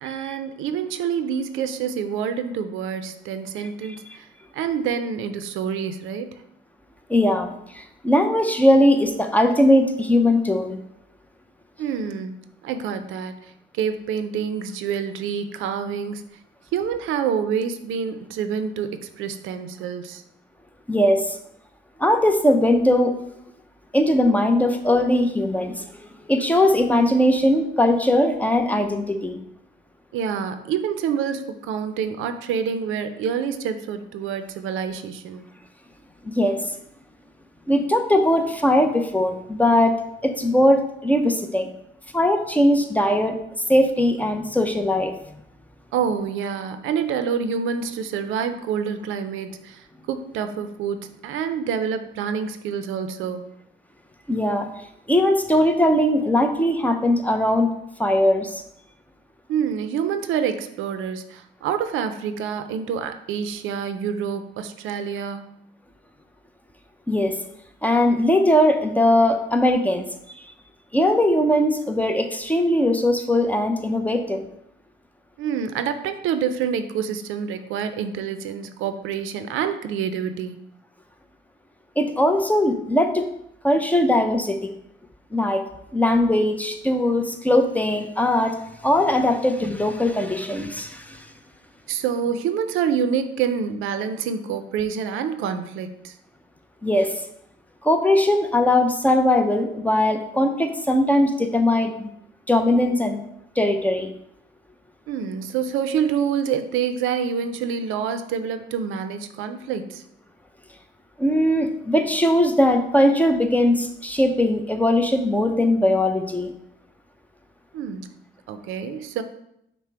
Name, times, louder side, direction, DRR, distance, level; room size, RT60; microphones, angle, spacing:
voice 1, 0.0-4.3 4.5-6.3 11.8-16.2 16.7-20.2 30.1-35.5 45.9-53.5 59.5-65.5 75.4-80.6 91.9-96.1 105.1-110.0 117.7-118.1 118.5-119.2, right 7 dB, 85° right, 9 dB, 0.4 m, -27 dB
voice 2, 7.1-10.8 20.9-21.4 22.0-23.1 23.9-29.4 36.4-36.6 37.7-40.0 40.2-41.7 42.1-43.4 43.7-45.1 54.3-54.7 55.1-57.7 58.0-58.6 67.1-67.4 67.8-70.0 70.9-74.5 82.0-83.3 83.6-84.7 85.3-85.6 85.9-88.6 88.8-91.3 96.8-97.2 97.8-102.1 102.5-103.2 103.6-104.1 111.2-116.5, left 1 dB, 10° left, 5 dB, 0.5 m, -20 dB
5.7 x 2.1 x 4.4 m, 0.78 s
cardioid pair, 90°, 20 cm